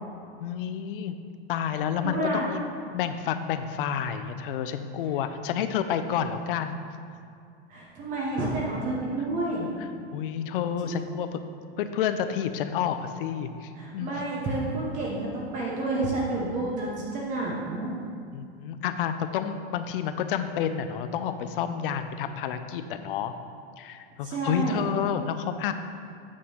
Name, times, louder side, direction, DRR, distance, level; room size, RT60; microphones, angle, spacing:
voice 1, 0.4-1.1 1.5-2.6 2.9-6.8 9.8-11.4 11.8-14.2 18.3-23.3 23.8-25.7, left 8 dB, 60° left, 9 dB, 0.6 m, -30 dB
voice 2, 2.0-2.5 7.7-9.7 10.9-11.1 13.7-17.9 24.2-24.8, right 2 dB, 25° right, -4 dB, 0.9 m, -30 dB
8.5 x 3.7 x 6.4 m, 2.3 s
supercardioid pair, 160°, 31 cm